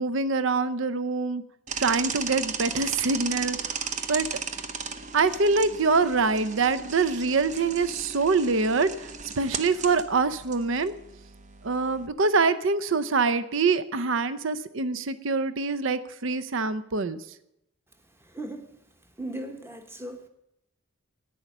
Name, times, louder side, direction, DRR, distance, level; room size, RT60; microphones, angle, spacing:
voice 1, 0.0-1.4 1.8-4.3 5.1-9.1 9.4-10.9 11.6-17.2, right 4 dB, 65° right, 14 dB, 0.6 m, -25 dB
sound 1, 1.7-12.1, right 5 dB, 35° right, 0.8 m, -36 dB
voice 2, 18.2-18.7 19.2-20.3, right 1 dB, 10° right, 6 dB, 1.1 m, -37 dB
11.0 x 9.2 x 7.2 m, 0.82 s
head